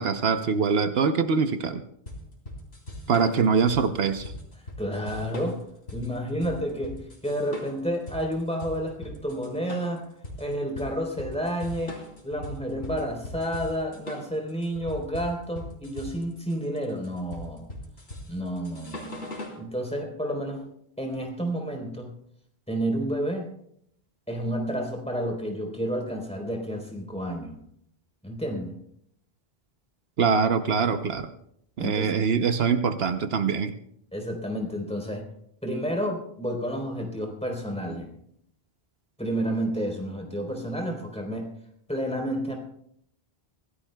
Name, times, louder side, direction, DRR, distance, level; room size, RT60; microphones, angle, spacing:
voice 1, 0.0-1.8 3.1-4.3 30.2-31.3 31.8-33.7, right 5 dB, 75° right, 9 dB, 1.0 m, -23 dB
sound 1, 2.1-19.6, left 1 dB, 90° left, 3.5 m, -40 dB
voice 2, 4.6-5.6 5.9-10.0 10.4-12.0 12.2-17.7 18.3-19.3 19.6-20.7 21.0-22.2 22.7-23.5 24.3-27.5 28.2-28.7 31.8-32.2 34.1-35.3 35.6-38.1 39.2-41.5 41.9-42.6, equal, 5° left, 1 dB, 3.7 m, -30 dB
25.0 x 16.5 x 2.3 m, 0.71 s
omnidirectional pair, 1.0 m